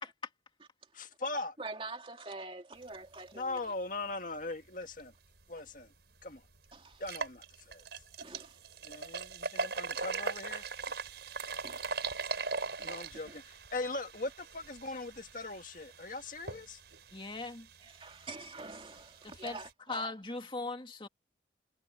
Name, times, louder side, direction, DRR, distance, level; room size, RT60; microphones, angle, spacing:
voice 1, 0.9-1.6 3.3-5.1 5.5-5.9 6.2-6.4 7.0-7.8 8.8-10.7 12.8-16.8, left 2 dB, 45° left, 1.9 m, -40 dB
voice 2, 1.6-3.7 6.7-7.0 8.2-8.6 10.9-11.0 11.5-11.9 13.2-13.4 17.8-20.1, right 3 dB, 30° right, 2.6 m, -46 dB
sound 1, 5.7-5.8 6.2-6.3 6.9-19.7, right 4 dB, 65° right, 4.8 m, -40 dB
voice 3, 17.1-17.7 19.2-19.6 19.9-21.1, left 3 dB, 25° left, 2.1 m, -39 dB
head